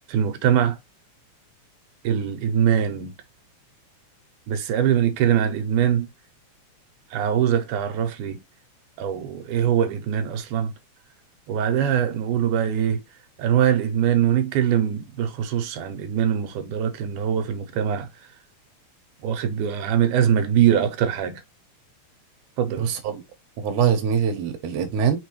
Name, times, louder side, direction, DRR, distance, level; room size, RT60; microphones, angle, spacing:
voice 1, 0.1-0.8 2.0-3.2 4.5-6.1 7.1-8.4 9.0-10.7 11.5-13.0 13.4-18.1 19.2-21.4 22.6-22.9, right 9 dB, 85° right, 2.2 m, -22 dB
voice 2, 22.8-23.2 23.6-25.2, right 7 dB, 65° right, 2.0 m, -23 dB
5.3 x 3.4 x 3.0 m
omnidirectional pair, 3.5 m